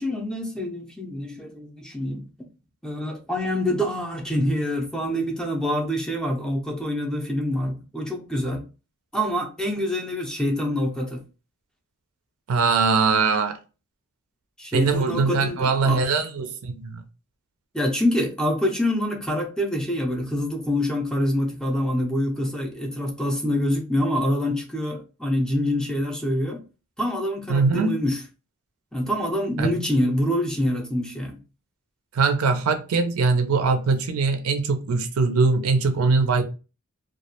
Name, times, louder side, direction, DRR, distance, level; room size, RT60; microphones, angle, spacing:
voice 1, 0.0-2.2 2.8-8.7 9.1-11.2 14.6-16.0 17.7-26.6 27.0-28.2 28.9-31.4, left 1 dB, 5° left, 0.4 m, -26 dB
voice 2, 12.5-13.6 14.7-17.0 27.5-27.9 29.6-29.7 32.1-36.4, right 4 dB, 70° right, 0.4 m, -21 dB
2.3 x 2.0 x 2.8 m
head